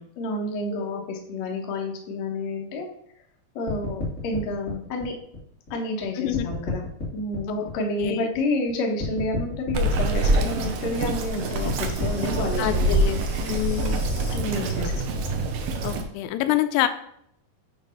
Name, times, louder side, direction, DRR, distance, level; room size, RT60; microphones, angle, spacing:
voice 1, 0.0-2.9 3.5-5.1 5.7-6.8 7.1-13.0 14.3-15.0, left 2 dB, 70° left, 1 dB, 1.6 m, -29 dB
sound 1, 3.7-6.0 6.3-8.7 9.0-14.4, left 3 dB, 25° left, 1.8 m, -35 dB
voice 2, 6.2-6.5 7.5-7.7 8.0-8.3 12.6-14.0 15.8-16.9, left 13 dB, 85° left, 10 dB, 2.7 m, -27 dB
Bird vocalization bird call bird song, 9.7-16.0, right 2 dB, 80° right, 2.0 m, -25 dB
7.9 x 3.3 x 5.2 m, 0.71 s
omnidirectional pair, 4.7 m